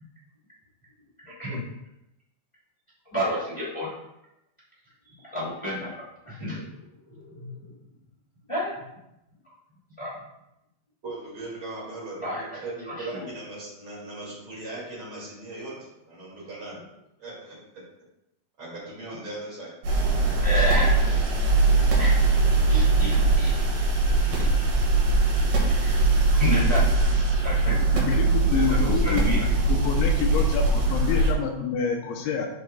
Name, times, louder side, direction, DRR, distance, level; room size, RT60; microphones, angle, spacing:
voice 1, 1.2-1.6 3.1-3.9 5.3-6.6 7.1-7.5 8.5-8.7 10.0-10.2 12.2-12.4 12.9-13.3 20.4-21.0 22.0-22.2 22.7-23.5 24.3-24.4 25.8-26.0 26.4-27.1 27.4-28.1 28.4-29.4, equal, 15° left, -7 dB, 1.1 m, -30 dB
voice 2, 11.0-16.8 17.2-17.8 18.6-19.7, right 2 dB, 35° right, -6 dB, 2.4 m, -38 dB
sound 1, 19.8-31.3, right 2 dB, 70° right, 4.0 m, -21 dB
voice 3, 27.7-29.2 29.7-32.5, left 6 dB, 80° left, 2 dB, 3.1 m, -28 dB
12.5 x 5.2 x 2.3 m, 0.89 s
omnidirectional pair, 5.3 m